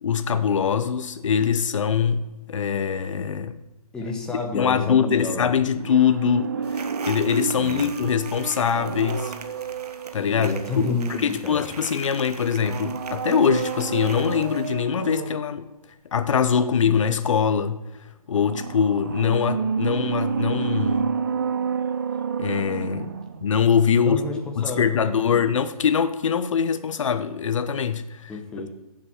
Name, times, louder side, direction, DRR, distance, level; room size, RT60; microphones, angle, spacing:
voice 1, 0.0-3.6 4.5-9.3 10.1-15.7 16.1-17.8 18.3-21.1 22.4-23.1 23.4-24.2 24.6-28.3, left 7 dB, 50° left, 0.9 m, -23 dB
voice 2, 3.9-5.5 7.6-7.9 10.3-11.6 24.0-24.4 24.6-25.5 28.3-28.7, left 3 dB, 5° left, 1.0 m, -31 dB
sound 1, 5.7-11.5 12.5-15.6 18.3-23.5 23.8-23.9, right 6 dB, 35° right, 0.4 m, -30 dB
sound 2, 6.6-14.7, right 4 dB, 80° right, 1.2 m, -42 dB
15.0 x 7.5 x 4.4 m
hypercardioid pair, 160°, 20 cm